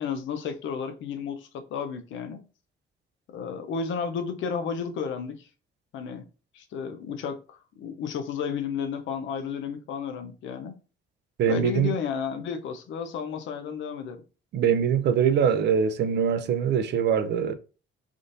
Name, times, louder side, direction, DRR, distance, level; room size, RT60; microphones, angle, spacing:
voice 1, 0.0-2.4 3.3-5.5 5.9-6.3 6.5-10.7 11.5-14.2, left 6 dB, 75° left, 0.6 m, -32 dB
voice 2, 11.4-11.9 14.5-17.5, right 7 dB, 60° right, 0.5 m, -23 dB
3.6 x 2.6 x 2.5 m
cardioid pair, 90°, 20 cm